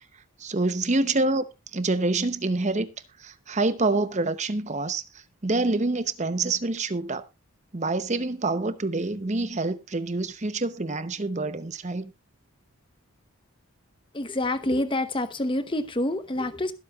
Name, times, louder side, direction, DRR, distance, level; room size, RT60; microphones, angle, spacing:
voice 1, 0.4-2.9 3.2-7.3 7.7-12.1, right 2 dB, 30° right, 0.8 m, -27 dB
voice 2, 14.1-16.7, left 1 dB, 20° left, 0.9 m, -27 dB
21.5 x 7.7 x 2.4 m
head